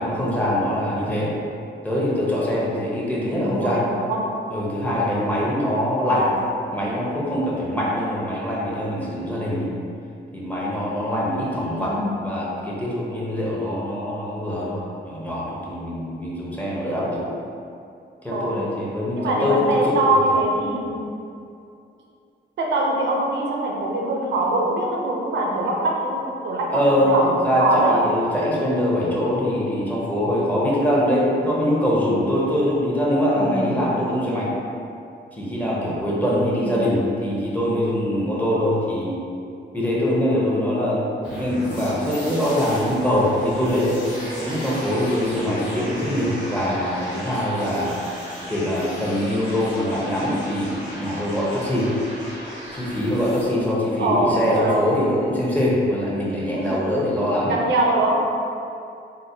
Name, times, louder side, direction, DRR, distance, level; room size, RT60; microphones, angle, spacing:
voice 1, 0.0-1.3 1.8-3.8 4.5-6.3 6.7-9.7 10.3-11.9 12.2-17.2 18.2-19.6 19.9-20.0 26.7-34.5 35.4-39.2 39.7-41.0 41.3-44.0 44.4-47.9 48.5-51.9 52.7-57.5, equal, 10° left, -6 dB, 0.7 m, -23 dB
voice 2, 3.2-4.3 6.1-6.4 11.7-12.3 18.3-18.7 19.2-21.1 22.6-28.1 33.3-33.9 36.5-36.9 54.0-54.9 56.5-58.2, right 1 dB, 85° right, -2 dB, 0.5 m, -23 dB
sound 1, 41.2-53.4, equal, 85° left, 1.3 m, -36 dB
3.8 x 2.2 x 2.7 m, 2.6 s
cardioid pair, 100°, 19 cm